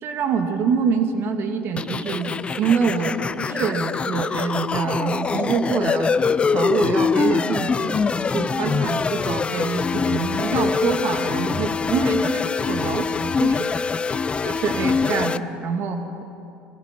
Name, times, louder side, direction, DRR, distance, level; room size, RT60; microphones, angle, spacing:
voice 1, 0.0-6.2 6.5-12.4 12.7-13.7 14.4-16.2, right 6 dB, 55° right, 5 dB, 2.3 m, -25 dB
sound 1, 1.8-15.4, left 5 dB, 20° left, 0.5 m, -23 dB
25.5 x 15.0 x 9.2 m, 2.8 s
supercardioid pair, 110°, 5 cm